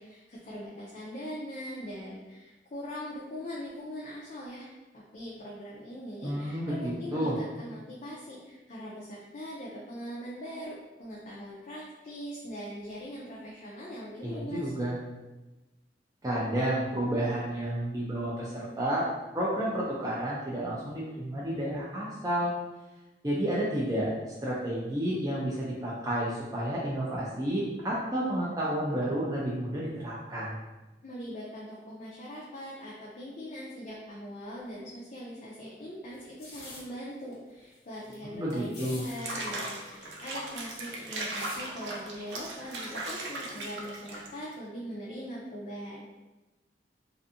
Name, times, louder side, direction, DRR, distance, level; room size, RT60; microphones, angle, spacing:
voice 1, 0.0-4.7 4.9-14.7 31.0-46.0, equal, 45° left, -6 dB, 0.4 m, -41 dB
voice 2, 6.2-7.3 14.2-15.0 16.2-19.1 19.3-22.5 23.2-24.1 24.4-30.6 38.2-39.1, right 1 dB, 20° right, -6 dB, 0.4 m, -31 dB
sound 1, 36.1-36.8 37.3-37.4 37.6-38.1 38.5-39.2 39.5-39.6 39.8-41.6 42.4-42.7, left 2 dB, 70° left, 0.8 m, -47 dB
Water / Bathtub (filling or washing), 39.1-44.5, right 2 dB, 75° right, 0.5 m, -38 dB
2.5 x 2.4 x 2.6 m, 1.1 s
head